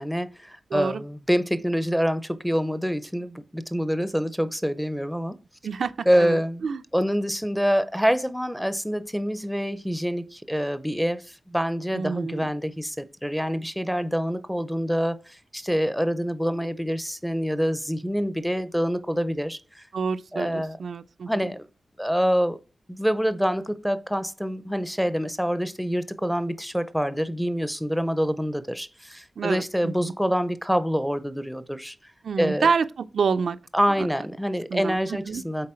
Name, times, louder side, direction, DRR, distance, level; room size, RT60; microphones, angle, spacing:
voice 1, 0.0-5.4 6.1-6.7 6.9-19.6 20.3-20.8 21.3-21.6 22.0-22.6 22.9-32.0 32.4-32.7 33.7-35.7, equal, ahead, 0.5 m, -26 dB
voice 2, 0.7-1.0 5.6-6.8 11.9-12.5 19.9-21.3 29.4-30.1 32.2-33.6 34.0-34.1 34.7-35.4, right 5 dB, 90° right, 0.4 m, -28 dB
7.6 x 4.0 x 4.3 m
wide cardioid pair, 120°, 0 cm